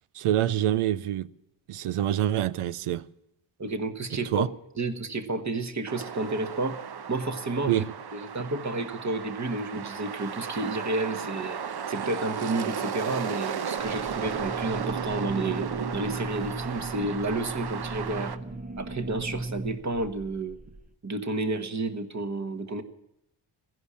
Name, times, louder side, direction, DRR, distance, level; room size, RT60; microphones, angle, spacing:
voice 1, 0.1-1.3 1.7-3.0 4.3-4.5 7.7-7.9, right 12 dB, 90° right, 0.7 m, -26 dB
voice 2, 3.6-4.5 4.8-6.8 7.1-7.8 8.1-18.3 18.8-20.6 21.0-22.8, right 2 dB, 35° right, 1.4 m, -31 dB
sound 1, 5.9-18.4, right 7 dB, 50° right, 0.9 m, -35 dB
sound 2, 13.8-20.9, right 2 dB, 20° right, 0.6 m, -38 dB
15.5 x 11.0 x 8.5 m
wide cardioid pair, 95°, 49 cm